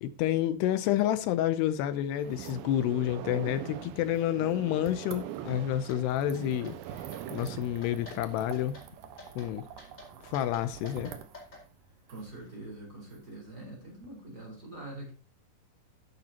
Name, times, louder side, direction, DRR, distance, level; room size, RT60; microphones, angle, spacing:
voice 1, 0.0-6.8 7.3-8.8 9.4-9.6 10.2-11.1, left 12 dB, 80° left, 2.7 m, -29 dB
sound 1, 2.2-14.1, right 7 dB, 65° right, 2.4 m, -49 dB
sound 2, 2.2-8.6, right 12 dB, 80° right, 2.2 m, -42 dB
sound 3, 5.9-6.0 6.3-6.8 7.1-7.5 7.8-8.2 8.5-8.9 9.2-9.5 9.8-11.6, left 2 dB, 20° left, 4.5 m, -49 dB
voice 2, 12.1-15.1, right 1 dB, 20° right, 4.6 m, -44 dB
12.0 x 11.0 x 2.9 m
omnidirectional pair, 4.8 m